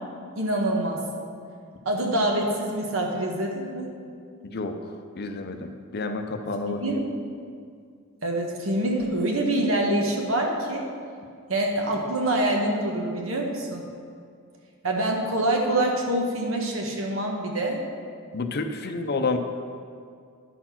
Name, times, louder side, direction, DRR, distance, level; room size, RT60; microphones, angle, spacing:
voice 1, 0.4-1.0 1.8-3.9 6.7-7.1 8.2-10.9 11.5-13.8 14.8-17.8, right 1 dB, 75° right, 1 dB, 1.3 m, -25 dB
voice 2, 4.4-4.8 5.2-6.8 18.3-19.4, left 3 dB, 50° left, 7 dB, 0.6 m, -29 dB
10.0 x 4.3 x 5.8 m, 2.2 s
head